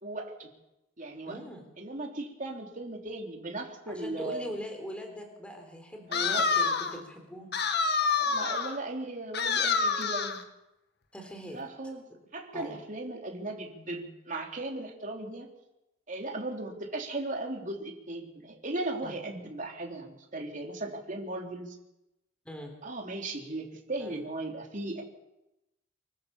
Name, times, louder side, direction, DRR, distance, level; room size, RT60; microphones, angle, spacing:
voice 1, 0.0-0.5 1.0-1.4 1.8-4.5 6.1-6.5 8.2-10.4 11.5-12.0 12.3-15.5 16.1-21.8 22.8-25.0, right 2 dB, 45° right, 2 dB, 3.3 m, -37 dB
voice 2, 1.3-1.6 3.9-7.6 11.1-11.6 12.5-12.8 19.0-19.1 22.5-22.7 24.0-24.2, equal, 5° left, 3 dB, 3.9 m, -41 dB
sound 1, 6.1-7.0 7.5-8.8 9.3-10.4, left 5 dB, 60° left, 1.6 m, -27 dB
25.0 x 15.0 x 7.0 m, 0.95 s
head